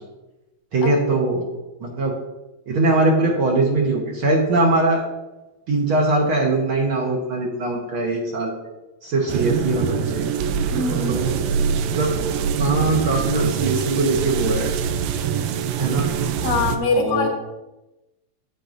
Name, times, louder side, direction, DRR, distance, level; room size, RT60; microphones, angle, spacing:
voice 1, 0.7-1.5 1.8-2.1 2.7-5.0 5.7-8.5 9.0-10.3 11.1-11.4 11.9-12.1 12.5-14.7 15.8-16.1 16.9-17.3, right 2 dB, 55° right, -1 dB, 1.6 m, -21 dB
sound 1, 9.3-16.8, right 7 dB, 85° right, 2.0 m, -24 dB
voice 2, 10.7-11.3 16.4-17.3, left 4 dB, 80° left, 2 dB, 2.7 m, -23 dB
10.5 x 8.5 x 2.6 m, 1.0 s
omnidirectional pair, 3.4 m